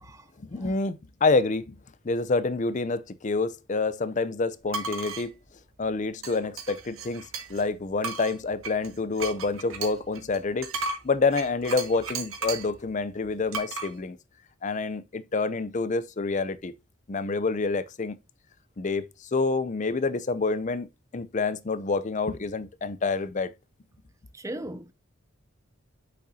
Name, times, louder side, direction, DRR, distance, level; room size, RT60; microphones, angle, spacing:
voice 1, 0.4-1.8 2.0-5.4 5.8-10.7 11.0-14.2 14.6-16.7 17.1-18.2 18.8-20.9 21.1-23.5, left 3 dB, 35° left, 0.5 m, -27 dB
sound 1, 4.7-5.3 6.2-7.7 8.0-12.7 13.5-13.9, right 4 dB, 85° right, 1.6 m, -35 dB
voice 2, 24.3-24.9, right 1 dB, 15° right, 0.5 m, -38 dB
8.4 x 6.3 x 2.7 m
head